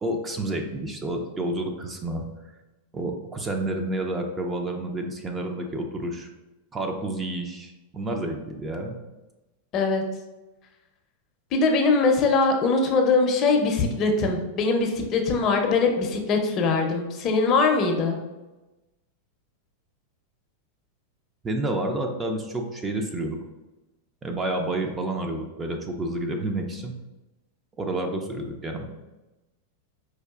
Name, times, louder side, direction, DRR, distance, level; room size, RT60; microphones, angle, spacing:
voice 1, 0.0-2.2 2.9-6.3 6.7-9.0 21.4-23.4 24.2-26.9 27.8-28.9, right 1 dB, 20° right, 3 dB, 0.4 m, -29 dB
voice 2, 9.7-10.0 11.5-18.2, left 4 dB, 35° left, 3 dB, 0.5 m, -22 dB
4.6 x 2.4 x 2.3 m, 1.1 s
supercardioid pair, 130°, 0 cm